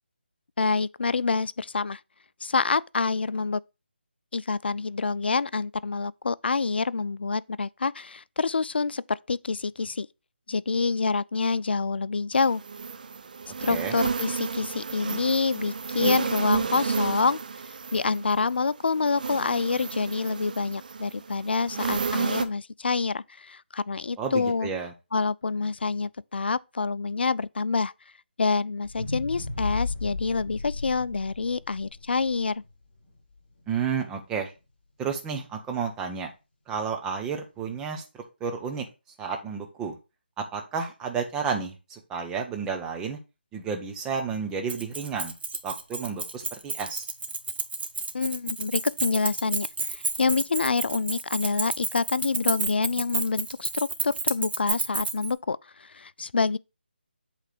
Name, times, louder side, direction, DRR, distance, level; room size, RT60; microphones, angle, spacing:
voice 1, 0.6-2.0 2.4-3.6 4.3-10.1 10.5-12.6 13.6-17.4 17.9-24.7 25.1-27.9 28.4-32.6 48.1-56.6, left 4 dB, 70° left, 0.4 m, -27 dB
Honey Bees Buzzing, 12.3-22.4, right 5 dB, 50° right, 0.7 m, -31 dB
voice 2, 24.2-24.9 33.7-34.5 35.0-36.3 36.7-38.0 38.4-38.8 39.2-40.0 40.4-43.2 43.5-45.3 45.6-47.1, right 6 dB, 10° right, 0.9 m, -31 dB
sound 1, 28.8-33.1 33.6-33.7, left 3 dB, 35° left, 4.1 m, -34 dB
Keys jangling, 44.7-55.3, right 3 dB, 65° right, 1.2 m, -31 dB
8.0 x 3.3 x 5.9 m
figure-of-eight pair, 160°, 6 cm